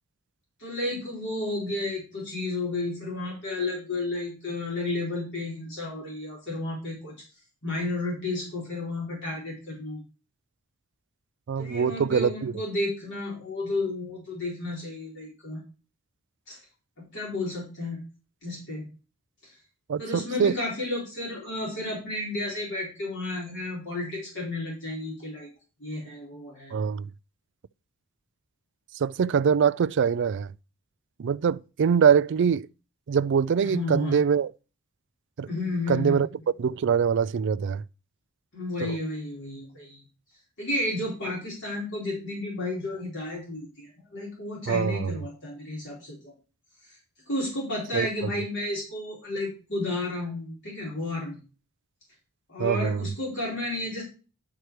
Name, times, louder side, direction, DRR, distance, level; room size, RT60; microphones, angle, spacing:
voice 1, 0.6-7.1 7.6-10.0 11.6-15.6 16.5-16.6 17.0-18.0 18.4-18.8 20.0-25.5 25.8-26.8 33.6-34.2 35.5-36.2 38.5-40.0 40.6-46.3 47.3-51.4 52.5-54.0, left 2 dB, 55° left, 4.3 m, -32 dB
voice 2, 11.5-12.5 19.9-20.6 26.7-27.1 28.9-30.5 31.2-32.7 33.1-34.5 35.4-35.5 35.9-36.3 36.6-37.8 38.8-39.0 44.7-45.2 47.9-48.1 52.6-53.1, right 7 dB, 55° right, 0.4 m, -23 dB
11.5 x 4.7 x 4.7 m
head